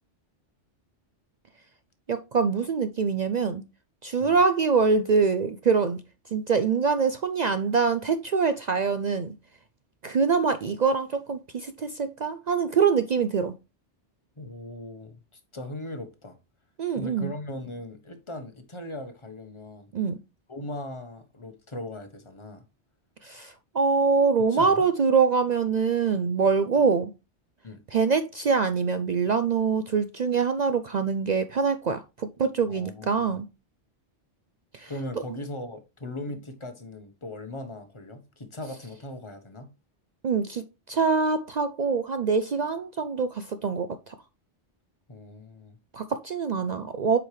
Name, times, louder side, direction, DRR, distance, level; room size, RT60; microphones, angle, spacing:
voice 1, 2.1-3.6 4.0-6.0 6.3-9.3 10.0-13.5 16.8-17.3 19.9-20.2 23.2-27.1 27.9-33.5 34.7-34.9 40.2-44.1 45.9-47.2, right 5 dB, 55° right, 0.5 m, -24 dB
voice 2, 14.4-16.4 16.9-19.9 20.5-22.7 24.5-24.9 26.8-26.9 27.6-27.8 32.7-33.4 34.9-39.7 45.1-45.8, left 1 dB, 25° left, 1.1 m, -39 dB
7.8 x 4.9 x 3.2 m
omnidirectional pair, 1.2 m